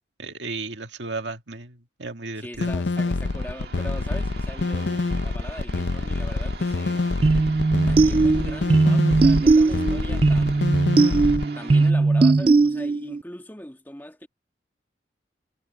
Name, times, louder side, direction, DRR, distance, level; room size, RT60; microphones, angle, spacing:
voice 1, 0.2-2.7, right 3 dB, 85° right, 2.0 m, -34 dB
voice 2, 2.4-7.1 7.7-11.0 11.6-14.3, left 1 dB, 10° left, 1.7 m, -40 dB
sound 1, 2.5-11.4, left 3 dB, 90° left, 0.7 m, -26 dB
sound 2, 2.8-11.9, right 4 dB, 60° right, 1.9 m, -43 dB
sound 3, 7.2-13.2, right 3 dB, 30° right, 0.3 m, -19 dB
head